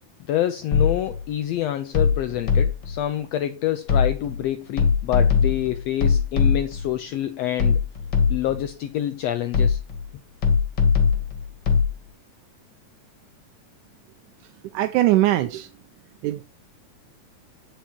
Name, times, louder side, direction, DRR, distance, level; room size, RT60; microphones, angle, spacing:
voice 1, 0.3-7.8 8.3-9.8, left 12 dB, 85° left, 1.5 m, -27 dB
sound 1, 0.7-1.2 1.9-3.0 3.9-4.4 4.8-6.9 7.6-8.6 9.5-10.1 10.4-11.9, left 6 dB, 40° left, 2.1 m, -21 dB
voice 2, 14.7-15.7 16.2-16.4, right 15 dB, 90° right, 2.1 m, -20 dB
9.0 x 5.6 x 4.4 m
omnidirectional pair, 3.5 m